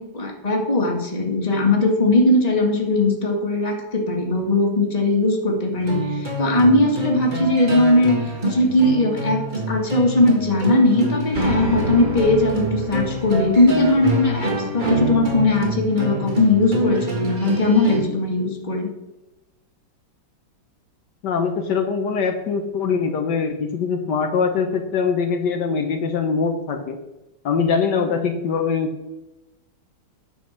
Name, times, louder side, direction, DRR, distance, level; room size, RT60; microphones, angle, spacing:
voice 1, 0.0-8.2 8.4-18.9, left 2 dB, 25° left, 1 dB, 1.8 m, -19 dB
sound 1, 5.7-18.0, right 1 dB, 25° right, 1.9 m, -26 dB
voice 2, 21.2-27.0 27.4-29.1, left 5 dB, 75° left, 5 dB, 1.6 m, -22 dB
9.5 x 5.4 x 6.4 m, 0.97 s
omnidirectional pair, 1.9 m